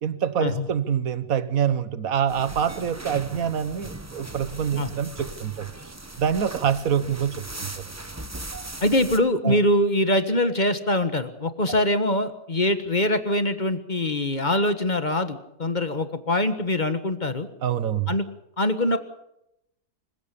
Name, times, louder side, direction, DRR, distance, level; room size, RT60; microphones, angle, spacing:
voice 1, 0.0-5.7 6.2-7.7 9.4-9.6 17.6-18.1, right 8 dB, 60° right, 14 dB, 1.6 m, -25 dB
sound 1, 2.3-9.2, right 2 dB, 10° right, 0.9 m, -39 dB
voice 2, 8.8-17.5 18.1-18.3 18.6-19.0, left 1 dB, 30° left, 10 dB, 1.6 m, -23 dB
26.5 x 16.0 x 7.0 m, 0.82 s
omnidirectional pair, 1.7 m